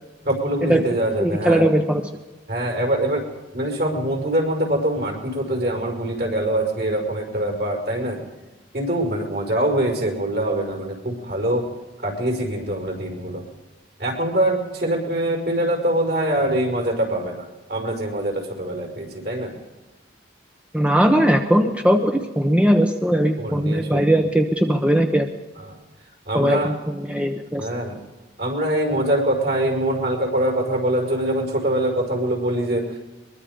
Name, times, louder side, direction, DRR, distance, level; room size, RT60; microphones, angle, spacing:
voice 1, 0.3-1.7 2.5-3.3 3.5-8.2 8.7-11.7 12.0-13.4 14.0-19.5 23.4-24.0 25.6-25.8 26.3-26.7 27.6-28.0 28.4-33.0, right 1 dB, 55° right, 1 dB, 5.6 m, -24 dB
voice 2, 1.2-2.0 20.7-25.3 26.3-27.7, equal, 5° right, 4 dB, 1.1 m, -19 dB
23.0 x 22.5 x 5.2 m, 1.1 s
head